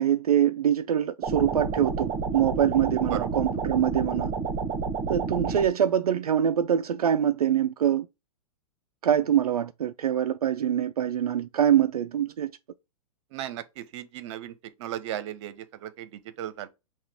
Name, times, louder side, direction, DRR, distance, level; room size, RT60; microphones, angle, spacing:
voice 1, 0.0-4.3 5.1-8.1 9.0-12.5, right 9 dB, 80° right, 0.4 m, -24 dB
sound 1, 1.2-5.7, right 5 dB, 30° right, 1.3 m, -30 dB
voice 2, 13.3-14.5 14.8-16.7, right 12 dB, 50° right, 0.9 m, -36 dB
5.7 x 2.4 x 3.5 m
hypercardioid pair, 115°, 19 cm